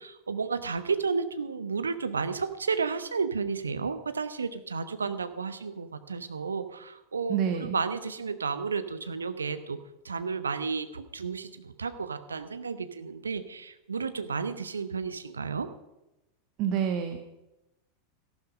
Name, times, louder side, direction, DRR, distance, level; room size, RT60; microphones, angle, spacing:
voice 1, 0.0-9.8 10.0-15.7, right 5 dB, 80° right, 11 dB, 0.9 m, -32 dB
voice 2, 7.3-7.8 16.6-17.2, right 8 dB, 45° right, 6 dB, 1.3 m, -28 dB
14.0 x 11.5 x 5.3 m, 0.93 s
figure-of-eight pair, 85°, 0 cm